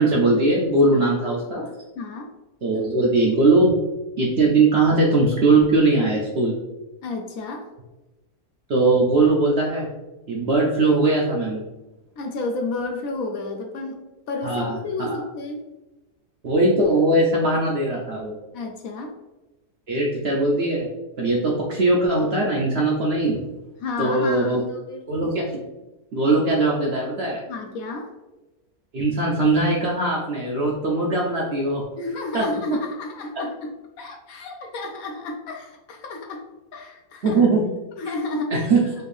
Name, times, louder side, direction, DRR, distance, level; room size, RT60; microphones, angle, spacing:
voice 1, 0.0-1.7 2.6-3.7 4.2-6.6 8.7-9.9 10.3-11.6 14.4-14.8 15.1-15.2 16.4-18.3 19.9-20.9 21.2-23.4 24.0-24.6 25.1-25.6 26.1-27.4 28.9-31.8 32.3-32.4 33.4-33.5 37.2-37.6 38.5-38.8, right 2 dB, 60° right, -3 dB, 0.7 m, -20 dB
voice 2, 2.0-2.3 7.0-7.7 12.2-15.6 18.5-19.1 23.8-25.1 27.5-28.1 32.0-33.7 34.0-36.4 36.7-37.4 38.0-38.7, left 3 dB, 70° left, 3 dB, 0.9 m, -31 dB
4.4 x 2.5 x 3.2 m, 1.1 s
omnidirectional pair, 1.7 m